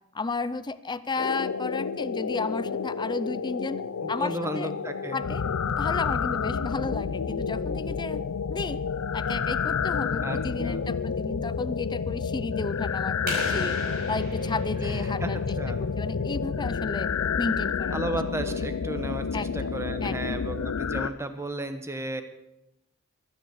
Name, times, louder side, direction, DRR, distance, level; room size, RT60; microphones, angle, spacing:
voice 1, 0.1-3.8 4.1-4.7 5.1-5.4 5.8-8.2 8.5-8.8 9.1-13.8 14.1-15.6 15.8-17.1 17.4-18.0 18.5-18.6 19.3-19.7 20.0-20.5, left 3 dB, 20° left, 15 dB, 0.4 m, -33 dB
sound 1, 1.2-21.1, left 6 dB, 75° left, 0.5 m, -29 dB
voice 2, 4.0-5.2 10.2-10.8 14.8-15.3 15.6-15.8 17.9-22.2, right 1 dB, 15° right, 8 dB, 1.0 m, -34 dB
sound 2, 13.3-15.9, right 1 dB, 45° right, 5.8 m, -37 dB
23.5 x 9.7 x 4.8 m, 0.90 s
head